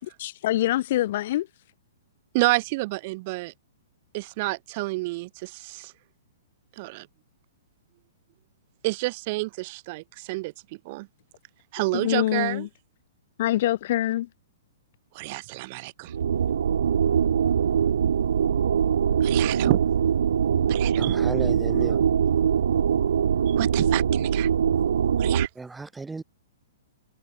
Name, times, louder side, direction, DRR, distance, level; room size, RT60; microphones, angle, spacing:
voice 1, 0.0-1.5 11.9-12.7 13.4-14.3, left 14 dB, 45° left, 4.5 m, -25 dB
voice 2, 2.3-3.5 4.1-5.9 6.8-7.1 8.8-10.5 10.8-11.1 11.7-12.7 15.1-16.1 19.2-19.8 20.7-21.2 23.5-24.5 25.2-25.5, right 23 dB, 35° right, 5.0 m, -29 dB
sound 1, 16.1-25.5, right 8 dB, 80° right, 1.7 m, -22 dB
voice 3, 21.0-22.0 25.6-26.2, right 3 dB, 5° right, 4.5 m, -34 dB
hypercardioid pair, 165°, 0 cm